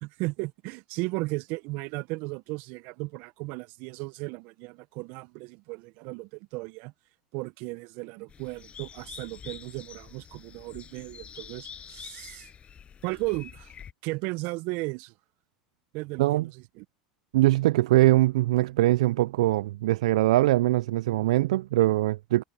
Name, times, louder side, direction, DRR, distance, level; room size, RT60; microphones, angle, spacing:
voice 1, 0.0-6.9 7.3-12.5 13.0-13.7 14.0-15.1 15.9-16.8, right 24 dB, 60° right, 0.9 m, -35 dB
sound 1, 8.3-13.9, left 8 dB, 35° left, 6.4 m, -46 dB
voice 2, 17.3-22.4, right 16 dB, 75° right, 0.3 m, -22 dB
hypercardioid pair, 90°, 4 cm